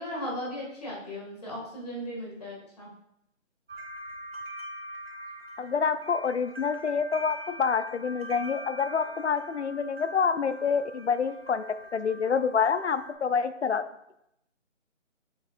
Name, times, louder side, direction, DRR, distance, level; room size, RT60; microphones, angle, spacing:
voice 1, 0.0-2.9, equal, 30° left, -4 dB, 2.1 m, -37 dB
sound 1, 3.7-13.1, right 1 dB, 50° right, 1.1 m, -43 dB
voice 2, 5.6-11.6 11.9-13.8, left 6 dB, 60° left, 13 dB, 0.5 m, -27 dB
7.2 x 6.9 x 2.5 m, 0.79 s
figure-of-eight pair, 170°, 38 cm